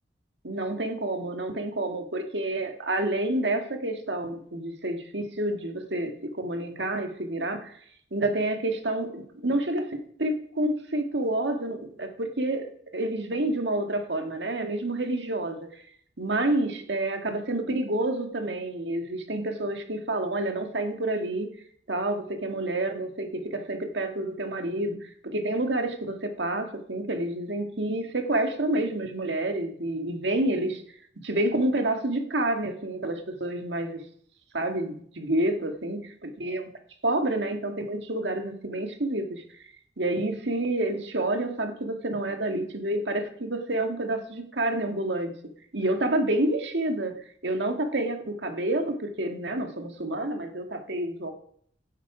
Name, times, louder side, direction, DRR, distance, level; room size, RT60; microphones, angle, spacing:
voice 1, 0.4-7.8 8.1-15.6 16.2-21.5 21.9-30.8 31.2-34.0 34.5-36.6 37.0-39.4 40.0-45.3 45.7-51.3, right 1 dB, 85° right, 5 dB, 2.0 m, -29 dB
16.0 x 11.5 x 5.1 m, 0.64 s
head